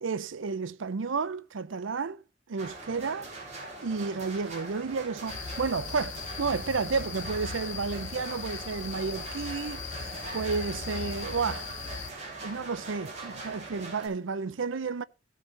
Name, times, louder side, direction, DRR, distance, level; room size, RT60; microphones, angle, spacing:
voice 1, 0.0-2.2 2.5-3.3 3.8-9.8 10.3-11.7 12.4-15.0, right 4 dB, 80° right, 0.6 m, -31 dB
sound 1, 2.6-14.1, right 3 dB, 35° right, 3.9 m, -42 dB
sound 2, 5.3-12.1, left 6 dB, 70° left, 0.8 m, -39 dB
16.0 x 5.8 x 4.1 m
head